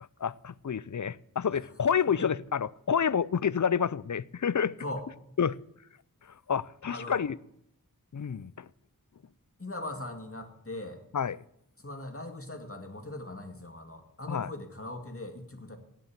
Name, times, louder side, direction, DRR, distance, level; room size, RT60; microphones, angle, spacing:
voice 1, 0.2-4.8 5.4-5.6 6.5-7.4 8.1-8.7 11.1-11.4 14.3-14.5, left 7 dB, 55° left, 0.5 m, -29 dB
voice 2, 6.9-7.2 9.6-11.0 11.8-15.8, left 1 dB, 40° left, 2.2 m, -40 dB
18.0 x 8.4 x 7.4 m
wide cardioid pair, 40°, 35 cm